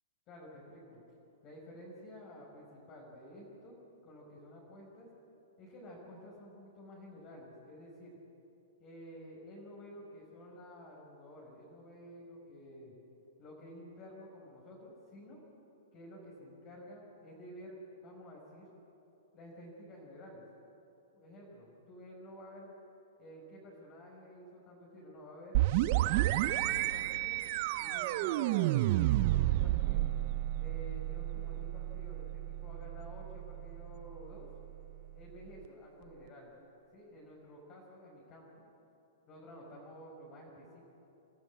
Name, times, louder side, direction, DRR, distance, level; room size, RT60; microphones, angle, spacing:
voice 1, 0.3-1.0 1.4-3.8 4.0-5.1 5.6-8.2 8.8-12.9 13.4-15.4 15.9-18.7 19.3-20.4 21.1-22.7 23.2-27.4 27.8-30.1 30.6-34.5 35.1-36.5 36.9-38.6 39.3-40.9, equal, 35° left, -3 dB, 5.6 m, -51 dB
sound 1, 25.5-35.1, right 16 dB, 50° right, 0.7 m, -31 dB
29.0 x 12.5 x 8.7 m, 2.9 s
hypercardioid pair, 130°, 0 cm